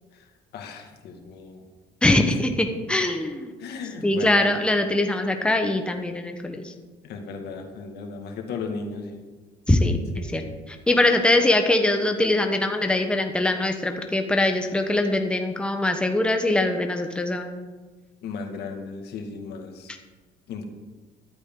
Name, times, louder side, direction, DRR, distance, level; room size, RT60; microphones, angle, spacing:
voice 1, 0.1-1.7 2.3-2.4 3.6-4.5 7.0-9.2 10.1-10.5 11.1-11.2 18.2-19.9 20.5-20.6, left 4 dB, 75° left, 3 dB, 2.1 m, -36 dB
voice 2, 2.0-3.5 4.0-6.7 9.7-10.4 10.7-17.7, left 2 dB, 5° left, 4 dB, 1.1 m, -22 dB
13.5 x 11.5 x 3.9 m, 1.3 s
cardioid pair, 110°, 17 cm